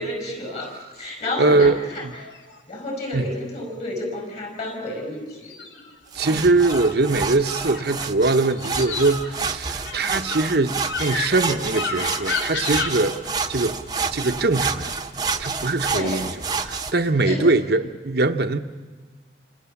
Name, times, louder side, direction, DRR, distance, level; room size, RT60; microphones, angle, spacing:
voice 1, 0.0-2.1 2.7-5.5 15.9-16.3 17.2-17.4, left 1 dB, 35° left, 2 dB, 6.5 m, -31 dB
voice 2, 1.4-1.8 2.0-2.1 3.1-3.3 6.1-13.1 13.5-13.8 14.1-15.0 15.4-16.3 16.6-18.6, right 3 dB, 55° right, 6 dB, 0.9 m, -21 dB
sound 1, 1.6-2.6 5.3-7.0 7.4-8.1 8.5-12.9, left 4 dB, 80° left, 3.1 m, -31 dB
sound 2, 6.1-16.9, right 4 dB, 20° right, 1.1 m, -29 dB
29.5 x 25.5 x 7.2 m, 1.3 s
head